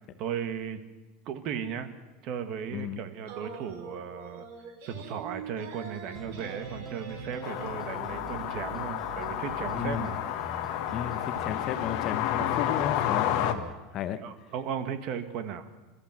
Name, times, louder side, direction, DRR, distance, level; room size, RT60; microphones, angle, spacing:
voice 1, 0.2-0.8 1.2-2.0 2.2-4.4 4.8-10.2 12.4-12.5 13.3-13.7 14.1-15.7, right 8 dB, 40° right, 10 dB, 1.7 m, -36 dB
sound 1, 3.2-7.7, right 5 dB, 80° right, 4.6 m, -44 dB
sound 2, 6.1-13.7, right 1 dB, 10° right, 1.6 m, -44 dB
sound 3, 7.4-13.5, left 11 dB, 50° left, 1.5 m, -31 dB
voice 2, 9.7-10.1 10.9-13.6 13.9-14.2, left 9 dB, 30° left, 12 dB, 0.9 m, -34 dB
27.5 x 13.5 x 7.6 m, 1.2 s
supercardioid pair, 170°, 0 cm